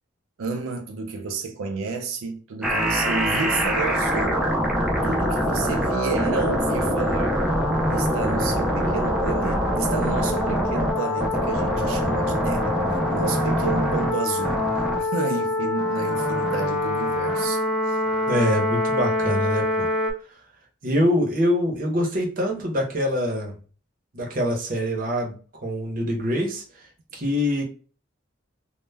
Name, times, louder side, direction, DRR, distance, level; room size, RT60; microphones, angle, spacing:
voice 1, 0.4-4.5 5.0-7.4 7.9-18.0, right 4 dB, 90° right, 0.4 m, -31 dB
sound 1, 2.6-20.1, equal, 5° right, 0.3 m, -24 dB
voice 2, 18.3-19.9 20.8-23.5 24.1-25.4 25.6-27.6, equal, 45° right, 0.6 m, -24 dB
2.1 x 2.0 x 3.2 m
head